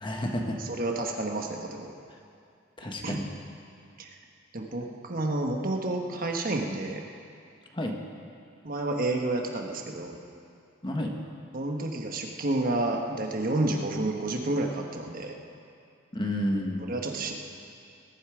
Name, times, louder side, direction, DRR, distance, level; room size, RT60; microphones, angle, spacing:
voice 1, 0.0-0.6 2.8-3.3 7.7-8.0 10.8-11.1 16.1-16.9, left 1 dB, 25° left, 2 dB, 1.3 m, -30 dB
voice 2, 0.6-1.9 3.0-3.2 4.0-4.1 4.5-7.0 8.6-10.2 11.5-15.3 16.8-17.3, right 2 dB, 45° right, 2 dB, 1.3 m, -30 dB
21.0 x 11.0 x 5.0 m, 2.4 s
head